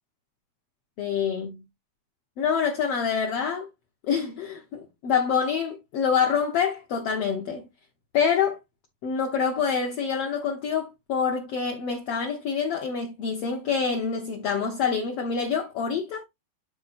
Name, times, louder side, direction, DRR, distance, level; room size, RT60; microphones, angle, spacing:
voice 1, 1.0-1.6 2.4-3.7 4.1-7.6 8.1-8.6 9.0-16.2, left 6 dB, 60° left, 1.7 m, -26 dB
11.5 x 4.4 x 2.5 m
omnidirectional pair, 3.8 m